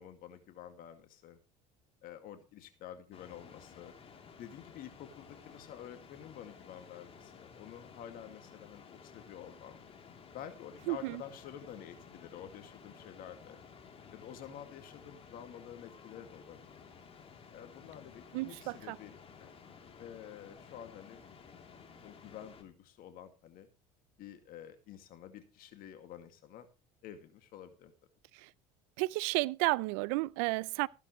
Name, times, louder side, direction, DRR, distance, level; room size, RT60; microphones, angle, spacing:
voice 1, 0.0-1.4 2.0-3.9 4.4-9.8 10.3-13.6 14.1-16.7 17.5-19.6 20.0-21.2 22.0-23.7 24.2-26.7 27.0-27.9, left 9 dB, 60° left, 2.2 m, -49 dB
sound 1, 3.1-22.6, left 6 dB, 35° left, 3.2 m, -55 dB
voice 2, 10.9-11.2 18.3-19.0 28.4-28.5 29.0-30.9, right 23 dB, 75° right, 0.6 m, -32 dB
15.0 x 12.0 x 3.1 m
supercardioid pair, 90°, 17 cm